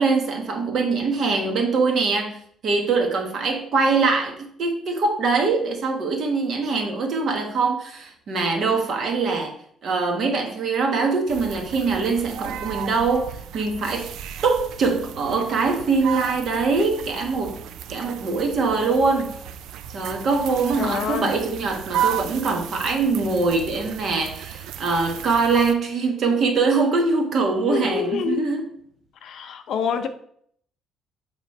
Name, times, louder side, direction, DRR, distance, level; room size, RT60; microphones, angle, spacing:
voice 1, 0.0-9.6 9.8-14.1 14.4-17.6 17.9-19.4 19.9-28.7, right 4 dB, 45° right, 1.4 m, -23 dB
sound 1, 11.3-25.7, right 10 dB, 70° right, 0.4 m, -34 dB
voice 2, 20.8-21.3 27.7-28.5 29.2-30.1, left 7 dB, 50° left, 0.6 m, -26 dB
7.9 x 3.2 x 5.3 m
cardioid pair, 165°, 0 cm